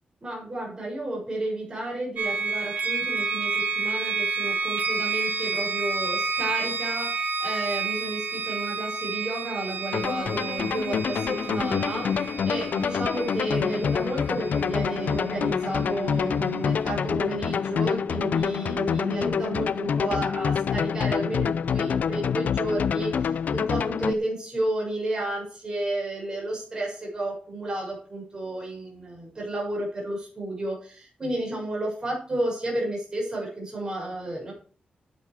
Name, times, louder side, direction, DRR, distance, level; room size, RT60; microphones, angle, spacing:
voice 1, 0.2-34.5, right 1 dB, 25° right, -3 dB, 7.0 m, -32 dB
sound 1, 2.2-16.0, right 4 dB, 60° right, 1.9 m, -30 dB
sound 2, 9.9-24.1, left 7 dB, 60° left, 0.5 m, -27 dB
10.5 x 9.0 x 5.0 m, 0.40 s
wide cardioid pair, 155°, 3 cm